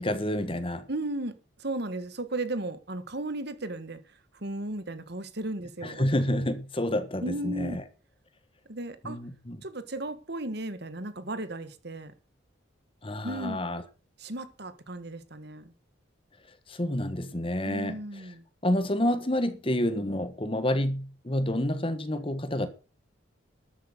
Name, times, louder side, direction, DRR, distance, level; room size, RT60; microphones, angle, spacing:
voice 1, 0.0-0.9 5.8-7.8 9.0-9.6 13.0-13.8 16.7-18.0 18.6-22.7, left 1 dB, 25° left, 1.3 m, -29 dB
voice 2, 0.9-4.0 4.3-6.0 6.3-6.4 7.2-7.8 8.7-9.2 9.6-12.1 13.2-13.6 14.2-15.7 17.6-18.4, right 2 dB, 55° right, 1.5 m, -35 dB
12.5 x 8.2 x 6.6 m
head